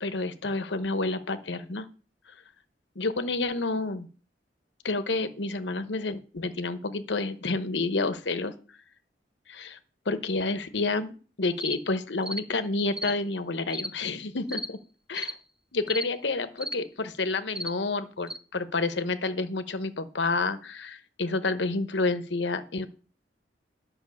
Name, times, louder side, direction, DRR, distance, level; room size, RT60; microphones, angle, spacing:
voice 1, 0.0-1.9 3.0-4.1 4.8-8.5 9.5-9.8 10.1-14.8 15.1-15.2 15.7-22.9, left 3 dB, 85° left, 11 dB, 1.0 m, -29 dB
sound 1, 11.6-11.8 12.2-12.5 12.9-13.1 13.7-13.9 14.5-14.7 15.1-15.4 15.9-16.1 16.6-16.8 17.5-17.7 18.3-18.4, equal, 5° right, 0.6 m, -34 dB
11.0 x 5.7 x 6.9 m, 0.38 s
head